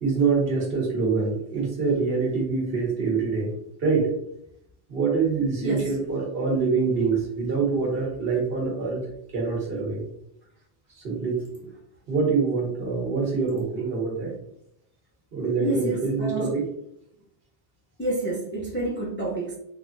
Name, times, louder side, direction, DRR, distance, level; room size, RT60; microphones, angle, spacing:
voice 1, 0.0-3.5 3.8-4.1 4.9-9.0 9.3-10.1 11.0-11.4 12.1-14.3 15.3-16.6, right 4 dB, 65° right, -2 dB, 1.1 m, -25 dB
voice 2, 15.6-16.5 18.0-19.6, right 1 dB, 15° left, -4 dB, 0.4 m, -29 dB
3.2 x 2.2 x 2.5 m, 0.73 s
omnidirectional pair, 1.1 m